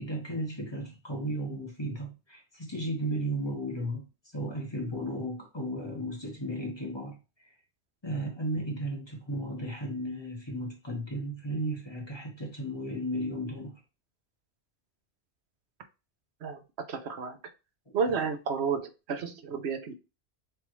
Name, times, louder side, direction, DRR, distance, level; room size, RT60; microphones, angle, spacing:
voice 1, 0.0-4.1 4.3-7.5 8.0-13.8 17.9-18.0, right 1 dB, 25° left, 1.2 m, -34 dB
voice 2, 16.9-17.4 17.9-19.9, right 5 dB, 80° right, 1.0 m, -31 dB
6.8 x 2.6 x 3.1 m
omnidirectional pair, 1.1 m